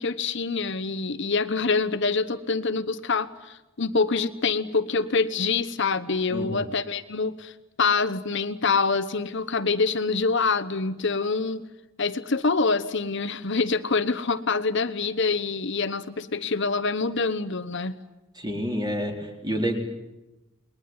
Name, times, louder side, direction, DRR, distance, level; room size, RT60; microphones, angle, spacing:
voice 1, 0.0-7.5 7.8-11.6 12.0-18.0, left 4 dB, 55° left, 11 dB, 1.1 m, -25 dB
voice 2, 6.3-6.6 18.3-19.8, equal, 20° right, 3 dB, 4.2 m, -28 dB
29.0 x 21.5 x 9.7 m, 1.0 s
head